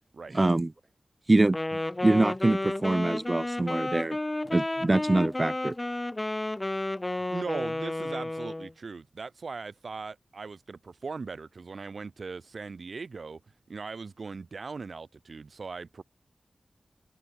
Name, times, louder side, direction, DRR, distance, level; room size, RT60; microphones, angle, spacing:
voice 1, 0.3-0.7 1.3-1.6 2.0-4.2 4.5-5.7, right 2 dB, 35° right, 0.4 m, -24 dB
Wind instrument woodwind instrument, 1.5-8.7, left 1 dB, 25° left, 0.4 m, -32 dB
voice 2, 7.0-13.4 13.7-16.0, right 4 dB, 70° right, 2.1 m, -39 dB
cardioid pair, 55°, 0 cm